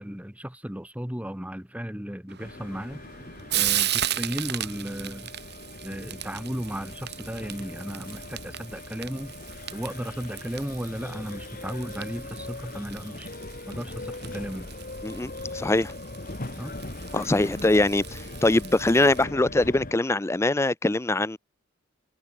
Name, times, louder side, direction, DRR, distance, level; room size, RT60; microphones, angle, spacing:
voice 1, 0.0-3.0 3.5-5.3 5.8-9.3 9.7-13.3 13.7-14.7 16.6-16.8, equal, 5° right, 1.4 m, -35 dB
Frying (food), 2.3-19.2, right 12 dB, 55° right, 6.2 m, -36 dB
sound 1, 2.4-19.9, left 2 dB, 45° left, 2.2 m, -40 dB
voice 2, 15.0-15.9 17.1-21.4, left 2 dB, 15° left, 0.5 m, -23 dB
head